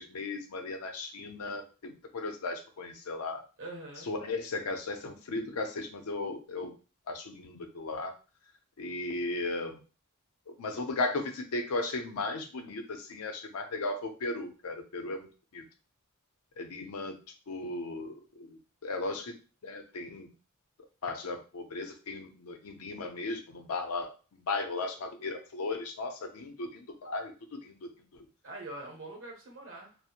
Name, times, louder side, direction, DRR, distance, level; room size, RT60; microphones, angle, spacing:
voice 1, 0.0-3.4 4.1-6.7 7.1-8.1 8.8-9.8 10.6-15.3 15.5-15.6 16.6-17.2 17.5-19.3 19.6-20.3 21.0-27.3 27.6-27.8, left 3 dB, 80° left, 5 dB, 0.5 m, -36 dB
voice 2, 3.6-4.1 28.4-30.0, right 2 dB, 60° right, 0 dB, 0.8 m, -43 dB
2.4 x 2.0 x 2.8 m, 0.34 s
head